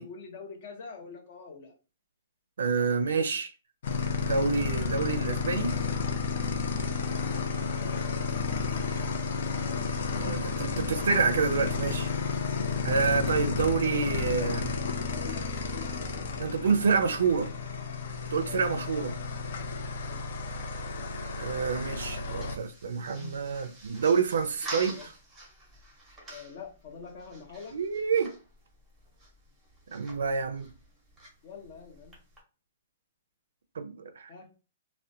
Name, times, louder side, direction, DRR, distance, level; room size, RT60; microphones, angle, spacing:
voice 1, 0.0-1.7 7.7-9.2 13.9-16.5 18.4-18.6 20.0-20.3 23.0-23.4 24.7-25.1 26.3-27.8 31.4-32.2 34.3-34.5, left 5 dB, 45° left, 0.8 m, -46 dB
voice 2, 2.6-3.5 4.3-5.7 10.2-12.1 12.8-14.7 16.4-17.5 18.3-19.2 21.4-25.1 27.7-28.4 29.9-30.7 33.8-34.3, right 5 dB, 90° right, 0.4 m, -28 dB
sound 1, 3.8-22.6, left 4 dB, 60° left, 0.4 m, -32 dB
sound 2, 21.5-32.4, right 2 dB, 10° right, 0.8 m, -48 dB
2.4 x 2.1 x 2.6 m
hypercardioid pair, 160°, 0 cm